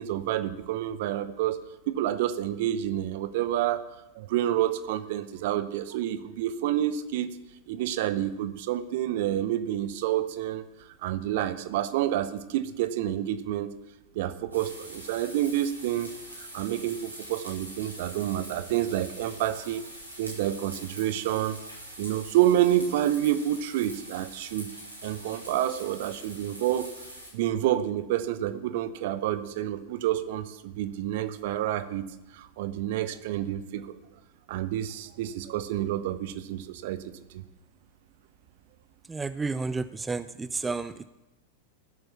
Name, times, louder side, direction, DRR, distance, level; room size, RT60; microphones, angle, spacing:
voice 1, 0.0-3.8 4.1-7.4 7.7-10.7 11.0-13.7 14.1-16.1 16.4-19.8 20.2-21.6 22.0-24.7 25.0-26.9 27.3-32.0 32.3-34.0 34.5-37.0 37.3-37.4, right 12 dB, 50° right, 12 dB, 0.9 m, -28 dB
sound 1, 14.5-27.3, right 1 dB, 85° right, 6.0 m, -44 dB
voice 2, 39.1-40.2 40.6-41.0, right 4 dB, 10° right, 14 dB, 0.5 m, -31 dB
15.5 x 7.9 x 7.1 m, 0.99 s
figure-of-eight pair, 90°, 0 cm